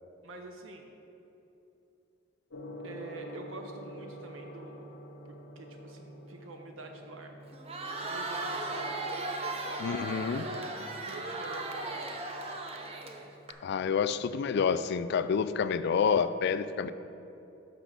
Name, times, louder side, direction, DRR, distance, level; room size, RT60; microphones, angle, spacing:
voice 1, 0.2-0.9 2.8-4.9 5.2-7.4 8.1-9.0 10.3-12.0, right 2 dB, 75° right, 4 dB, 0.7 m, -46 dB
Gong, 2.5-14.5, equal, 75° left, 0.8 m, -49 dB
Crowd, 7.5-13.5, right 2 dB, 30° right, 0.7 m, -37 dB
voice 2, 9.8-10.4 13.6-16.9, left 6 dB, 55° left, 13 dB, 0.3 m, -28 dB
6.1 x 6.0 x 6.7 m, 2.9 s
head